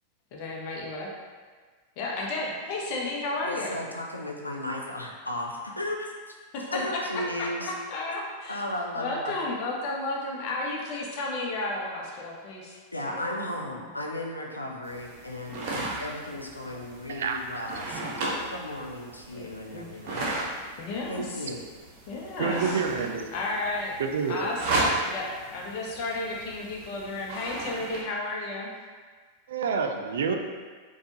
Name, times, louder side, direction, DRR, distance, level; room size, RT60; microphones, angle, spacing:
voice 1, 0.3-1.1 2.0-3.8 6.5-8.6 9.0-12.8 13.0-13.3 13.5-13.9 19.3-19.5 19.7-19.9 20.8-21.5 22.1-22.8 23.3-24.0 24.2-28.7, left 2 dB, 45° left, -2 dB, 0.7 m, -33 dB
voice 2, 3.4-6.3 6.7-7.7 8.5-9.3 12.9-20.3 21.1-21.6, left 1 dB, 85° left, 1 dB, 0.4 m, -35 dB
sound 1, 14.8-28.0, right 2 dB, 45° right, 0.7 m, -35 dB
voice 3, 22.4-23.3 24.0-24.5 29.5-30.3, right 5 dB, 60° right, 4 dB, 0.3 m, -28 dB
4.3 x 2.3 x 2.8 m, 1.5 s
figure-of-eight pair, 90°, 0 cm